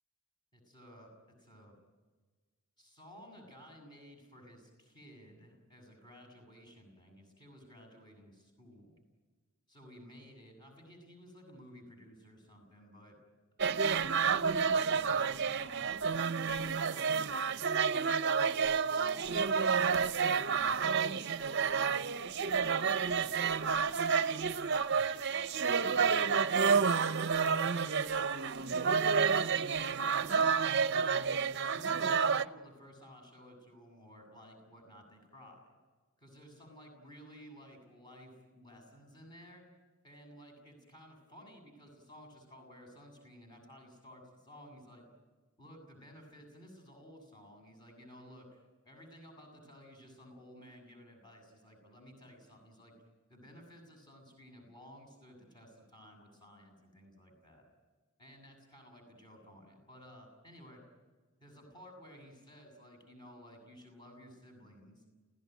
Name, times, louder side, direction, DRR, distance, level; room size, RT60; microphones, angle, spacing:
voice 1, 0.5-1.8 2.8-9.0 9.7-13.2 14.0-17.3 18.3-20.0 21.2-22.6 23.0-23.4 23.7-26.8 27.4-31.3 31.7-35.6 36.2-39.6 40.0-45.0 45.6-52.9 53.3-57.6 58.2-60.8 61.4-65.0, equal, 20° left, 2 dB, 7.3 m, -55 dB
sound 1, 13.6-32.4, right 6 dB, 55° right, 0.7 m, -30 dB
29.5 x 16.5 x 9.4 m, 1.4 s
head